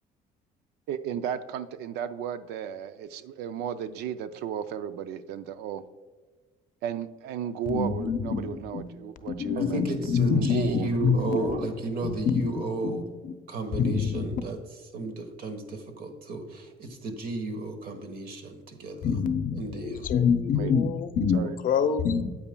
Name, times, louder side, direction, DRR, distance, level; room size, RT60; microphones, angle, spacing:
voice 1, 0.9-5.8 6.8-9.8 10.2-11.6 20.6-20.7 21.3-21.6, right 9 dB, 85° right, 12 dB, 0.4 m, -34 dB
voice 2, 7.7-8.8 9.3-11.6 12.0-13.3 13.7-14.3 19.0-22.3, left 6 dB, 55° left, 10 dB, 0.6 m, -26 dB
voice 3, 9.6-13.0 13.5-14.6 14.9-19.0 19.6-20.1, right 2 dB, 60° right, 6 dB, 1.3 m, -33 dB
8.7 x 8.2 x 2.2 m, 1.3 s
cardioid pair, 110°, 17 cm